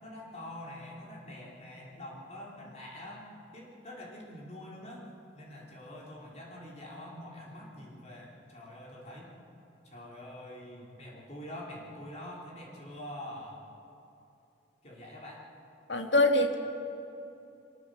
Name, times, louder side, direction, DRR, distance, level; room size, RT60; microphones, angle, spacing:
voice 1, 0.0-5.1 5.3-9.3 9.8-13.7 14.8-15.4, left 1 dB, 35° left, -4 dB, 4.0 m, -45 dB
voice 2, 15.9-16.6, left 2 dB, 75° left, 4 dB, 2.1 m, -24 dB
24.0 x 21.5 x 6.5 m, 2.8 s
head